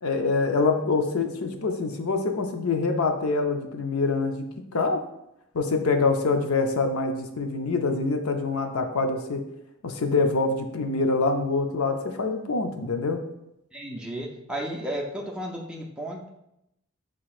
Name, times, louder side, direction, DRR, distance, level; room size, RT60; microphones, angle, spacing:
voice 1, 0.0-4.5 4.7-5.0 5.5-9.4 9.8-13.2, left 3 dB, 80° left, 5 dB, 0.6 m, -25 dB
voice 2, 13.7-16.3, right 1 dB, 5° right, -2 dB, 0.5 m, -33 dB
6.0 x 3.7 x 2.4 m, 0.83 s
head